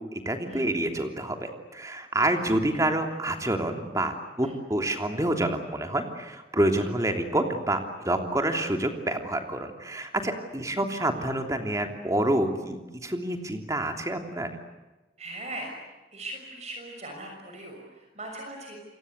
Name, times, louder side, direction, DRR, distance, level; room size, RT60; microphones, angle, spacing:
voice 1, 0.1-14.5, right 1 dB, 20° right, 5 dB, 3.1 m, -28 dB
voice 2, 15.2-15.8 16.1-18.8, right 1 dB, 40° right, 2 dB, 6.3 m, -40 dB
29.0 x 24.5 x 8.2 m, 1.1 s
head